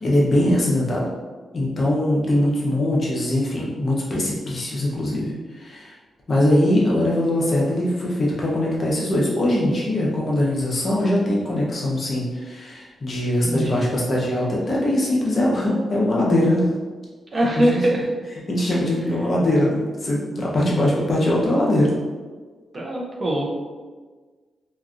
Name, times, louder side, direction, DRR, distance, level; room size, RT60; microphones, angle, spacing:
voice 1, 0.0-1.1 1.5-5.9 6.3-16.7 17.6-17.8 18.5-21.9, left 1 dB, 45° left, -4 dB, 0.8 m, -21 dB
voice 2, 13.4-14.2 17.3-18.1 22.7-23.6, right 1 dB, 35° right, -2 dB, 0.6 m, -23 dB
3.0 x 2.5 x 2.4 m, 1.4 s
cardioid pair, 90°, 0 cm